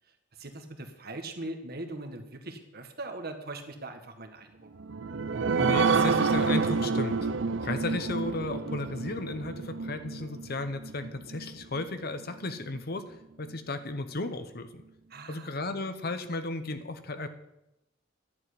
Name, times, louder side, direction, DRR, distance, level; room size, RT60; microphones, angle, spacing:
voice 1, 0.3-4.7 15.1-16.0, right 2 dB, 50° right, 5 dB, 1.7 m, -41 dB
sound 1, 4.8-11.8 12.3-12.4 12.7-12.8, right 4 dB, 65° right, 0.6 m, -29 dB
voice 2, 5.6-7.3 7.6-14.8 15.3-17.3, left 2 dB, 50° left, 10 dB, 0.9 m, -34 dB
11.0 x 7.4 x 9.8 m, 0.90 s
head